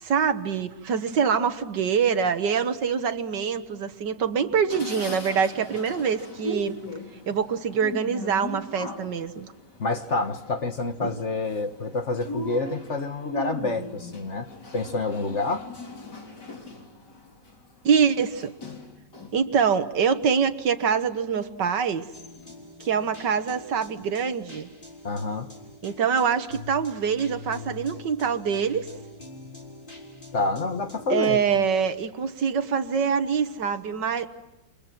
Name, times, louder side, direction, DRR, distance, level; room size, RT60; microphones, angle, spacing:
voice 1, 0.0-6.8 7.3-9.5 11.0-11.1 17.8-18.5 19.3-22.1 22.8-24.7 25.8-28.9 31.1-34.3, right 6 dB, 75° right, 10 dB, 1.9 m, -25 dB
sound 1, 4.7-19.5 19.9-20.9 21.4-21.5 21.8-22.7, left 1 dB, 65° left, 4.0 m, -39 dB
voice 2, 9.8-14.5 14.7-15.7 25.0-25.5 30.3-31.4, left 3 dB, 40° left, 7 dB, 1.5 m, -28 dB
sound 2, 22.1-31.3, left 3 dB, 25° left, 3.9 m, -44 dB
29.5 x 26.5 x 6.1 m, 0.99 s
omnidirectional pair, 1.9 m